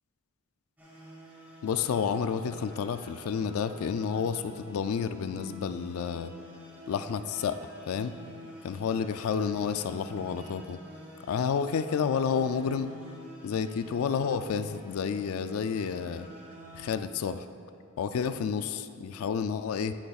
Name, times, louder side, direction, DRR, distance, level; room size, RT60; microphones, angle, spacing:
sound 1, 0.8-16.9, equal, 10° right, 1.7 m, -49 dB
voice 1, 1.6-6.3 6.9-7.6 7.9-8.2 8.6-10.8 11.3-13.0 13.4-16.3 16.7-17.5 18.0-20.0, left 6 dB, 85° left, 11 dB, 0.3 m, -30 dB
10.5 x 9.2 x 2.4 m, 2.4 s
head